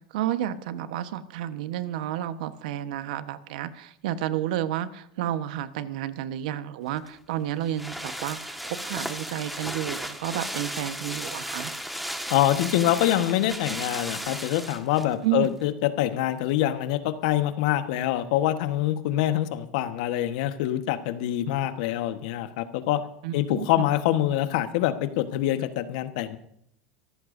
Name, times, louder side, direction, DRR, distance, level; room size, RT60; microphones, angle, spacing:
voice 1, 0.1-11.7 15.2-15.5 23.2-23.8, right 12 dB, 70° right, 11 dB, 1.2 m, -31 dB
sound 1, 7.0-15.1 15.4-15.5, equal, ahead, 1.6 m, -35 dB
voice 2, 12.3-23.0 23.3-26.4, left 13 dB, 70° left, 10 dB, 1.3 m, -25 dB
25.5 x 14.5 x 2.7 m, 0.71 s
hypercardioid pair, 95°, 4 cm